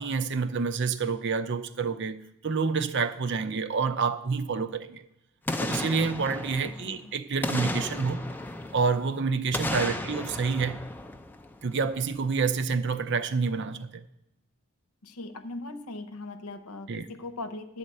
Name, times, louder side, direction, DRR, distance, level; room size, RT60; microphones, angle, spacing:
voice 1, 0.0-5.1 5.6-8.2 8.7-10.8 11.6-14.0 16.9-17.0, right 5 dB, 50° right, 0.5 m, -28 dB
Boom, 5.5-7.0 7.4-9.1 9.5-11.8 12.1-12.2, left 1 dB, 10° left, 0.5 m, -34 dB
voice 2, 6.6-7.1 15.0-17.8, left 2 dB, 80° left, 0.8 m, -40 dB
11.0 x 4.2 x 7.7 m
head